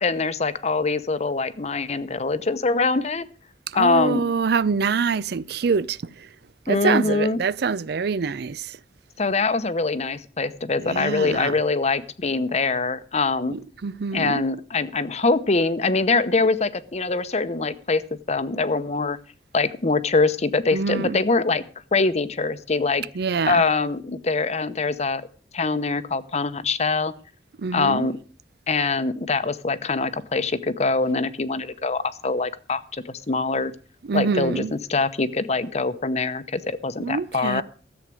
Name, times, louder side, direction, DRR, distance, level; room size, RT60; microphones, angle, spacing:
voice 1, 0.0-3.3 3.7-4.2 6.7-7.4 9.2-13.6 14.1-18.0 18.3-19.2 19.5-21.6 21.9-23.0 23.5-25.2 25.5-27.1 27.7-28.2 28.7-33.7 34.1-37.6, left 3 dB, 35° left, 0.8 m, -23 dB
voice 2, 3.7-6.0 6.7-8.6 10.8-11.5 13.5-14.4 20.7-21.2 23.2-23.6 27.6-28.1 34.1-34.7 37.0-37.6, right 5 dB, 60° right, 0.5 m, -25 dB
14.0 x 8.2 x 6.2 m
head